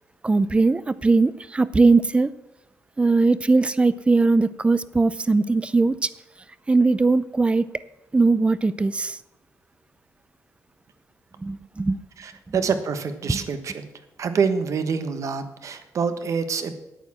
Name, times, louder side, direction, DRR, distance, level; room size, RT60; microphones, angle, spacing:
voice 1, 0.2-2.3 3.0-6.1 6.7-7.7 8.1-9.2 11.4-12.0 12.5-12.6 13.3-13.4, right 3 dB, 20° right, 17 dB, 0.5 m, -20 dB
voice 2, 12.2-13.9 14.2-16.7, right 5 dB, 55° right, 9 dB, 1.2 m, -26 dB
9.1 x 8.6 x 7.3 m, 0.98 s
cardioid pair, 110°, 6 cm